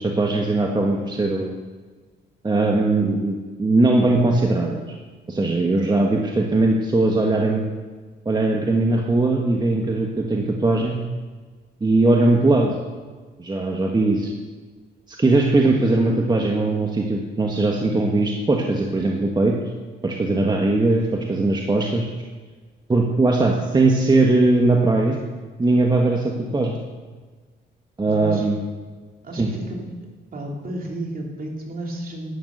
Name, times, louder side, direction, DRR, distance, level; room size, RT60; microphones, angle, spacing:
voice 1, 0.0-1.5 2.4-4.8 5.3-7.6 8.2-11.0 11.8-12.8 13.4-14.3 15.1-19.5 20.0-22.1 22.9-25.2 25.6-26.8 28.0-28.6 29.4-29.5, right 2 dB, 20° right, 0 dB, 1.4 m, -20 dB
voice 2, 28.0-28.5 29.2-29.8 30.3-32.4, right 1 dB, 45° right, 0 dB, 3.1 m, -32 dB
11.5 x 9.0 x 6.6 m, 1.4 s
cardioid pair, 90°, 20 cm